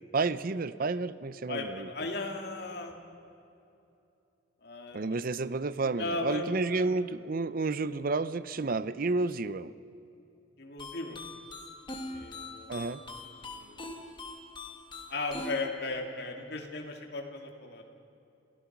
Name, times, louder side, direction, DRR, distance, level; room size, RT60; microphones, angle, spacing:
voice 1, 0.1-1.9 4.9-9.7 12.7-13.0, right 3 dB, 50° right, 15 dB, 0.6 m, -31 dB
voice 2, 1.5-3.0 4.6-5.0 5.9-6.9 10.6-11.2 12.1-12.9 13.4-14.0 15.1-17.8, left 3 dB, 60° left, 2 dB, 2.3 m, -37 dB
sound 1, 10.8-15.6, left 2 dB, 25° left, 1.6 m, -43 dB
27.0 x 16.0 x 5.9 m, 2.7 s
head